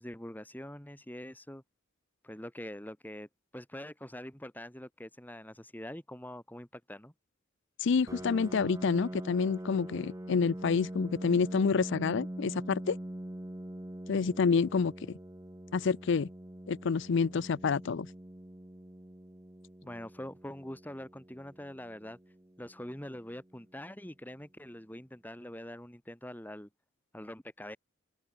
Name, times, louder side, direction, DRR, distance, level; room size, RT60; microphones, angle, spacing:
voice 1, 0.0-1.6 2.2-3.3 3.5-7.1 19.8-22.2 22.6-26.7 27.1-27.8, left 1 dB, 10° left, 2.1 m, -44 dB
voice 2, 7.8-13.0 14.1-14.9 15.7-16.3 16.7-18.1, left 5 dB, 60° left, 0.4 m, -28 dB
Piano, 8.1-23.5, right 1 dB, 15° right, 0.9 m, -44 dB
head